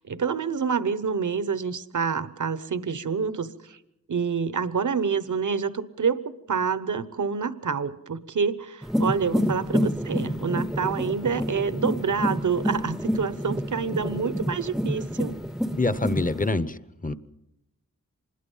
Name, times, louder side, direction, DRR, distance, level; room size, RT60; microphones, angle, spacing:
voice 1, 0.0-3.8 4.1-6.2 6.5-15.3, right 6 dB, 75° right, 14 dB, 1.1 m, -27 dB
sound 1, 8.8-16.5, equal, ahead, 0.8 m, -28 dB
voice 2, 15.8-17.1, left 2 dB, 25° left, 14 dB, 1.0 m, -26 dB
26.0 x 21.0 x 5.6 m, 0.88 s
wide cardioid pair, 95°, 31 cm